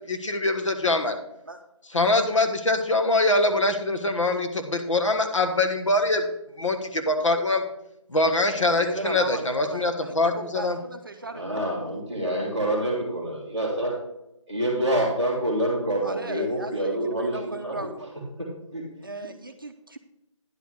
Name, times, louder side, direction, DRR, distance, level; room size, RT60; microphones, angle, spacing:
voice 1, 0.1-1.1 1.9-6.3 6.6-7.6 8.1-10.8, left 2 dB, 65° left, 5 dB, 1.4 m, -23 dB
voice 2, 8.6-11.5 16.0-17.9 19.0-20.0, right 2 dB, 40° right, 6 dB, 0.6 m, -36 dB
voice 3, 11.3-14.0 14.5-18.1 18.4-18.8, right 1 dB, 5° left, -9 dB, 2.0 m, -27 dB
10.5 x 4.7 x 6.3 m, 0.84 s
figure-of-eight pair, 175°, 17 cm